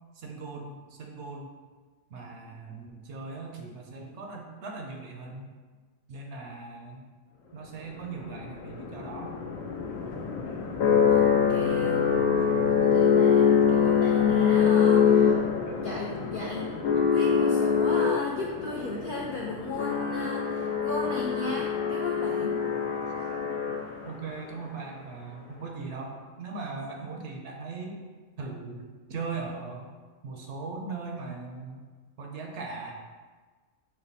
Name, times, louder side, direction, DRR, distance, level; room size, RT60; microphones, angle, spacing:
voice 1, 0.1-1.5 2.1-5.5 6.1-7.1 7.5-9.3 24.0-28.0 28.4-29.9 30.2-31.9 32.2-32.9, right 4 dB, 65° right, 1 dB, 0.8 m, -39 dB
sound 1, 8.0-24.2, left 7 dB, 85° left, 1.1 m, -24 dB
voice 2, 11.1-12.0 12.8-15.4 15.8-16.8 17.1-22.6, left 2 dB, 65° left, -3 dB, 0.5 m, -36 dB
5.6 x 2.1 x 4.0 m, 1.4 s
omnidirectional pair, 1.4 m